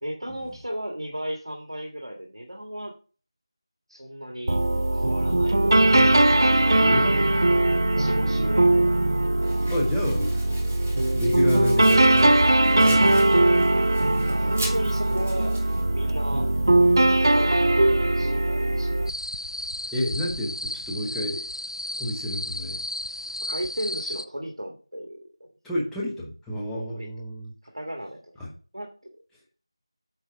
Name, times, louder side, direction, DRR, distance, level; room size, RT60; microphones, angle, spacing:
voice 1, 0.0-2.9 3.9-4.6 4.9-6.1 6.5-7.2 8.0-9.0 9.5-9.7 14.3-15.6 15.9-16.5 17.1-18.9 23.4-25.3 26.9-27.1 27.6-28.3 28.7-29.1, equal, 70° right, 1 dB, 1.8 m, -35 dB
sound 1, 4.5-19.1, right 2 dB, 45° right, 0.3 m, -20 dB
voice 2, 5.9-6.3 6.7-7.8 9.6-10.5 11.1-12.4 12.7-13.6 19.9-21.4 22.0-22.8 25.6-27.5 28.4-28.5, left 1 dB, ahead, -6 dB, 0.6 m, -30 dB
Domestic sounds home sounds, 9.4-15.8, right 1 dB, 20° right, 1.1 m, -41 dB
sound 2, 19.1-24.3, left 1 dB, 70° left, 0.6 m, -33 dB
8.9 x 3.9 x 4.6 m, 0.38 s
figure-of-eight pair, 170°, 3 cm